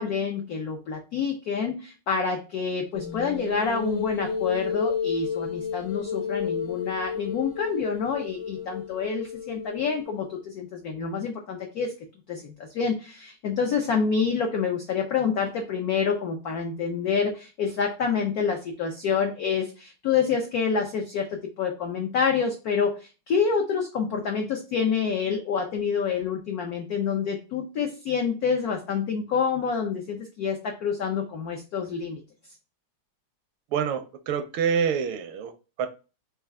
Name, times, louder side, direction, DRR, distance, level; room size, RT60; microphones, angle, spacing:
voice 1, 0.0-12.0 12.3-32.2, left 6 dB, 85° left, 0.8 m, -27 dB
sound 1, 2.9-10.3, left 6 dB, 65° left, 1.4 m, -32 dB
voice 2, 33.7-35.5 35.8-35.9, right 7 dB, 85° right, 1.5 m, -26 dB
4.3 x 2.3 x 3.5 m
omnidirectional pair, 2.3 m